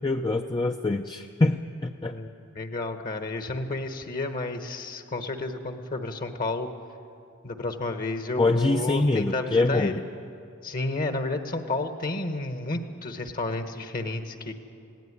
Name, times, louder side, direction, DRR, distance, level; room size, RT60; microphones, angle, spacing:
voice 1, 0.0-2.1 8.4-10.0, left 2 dB, 20° left, 5 dB, 0.5 m, -24 dB
voice 2, 2.5-6.7 7.4-10.0 10.6-14.5, left 2 dB, 40° left, 7 dB, 1.2 m, -31 dB
20.0 x 17.0 x 9.6 m, 2.7 s
head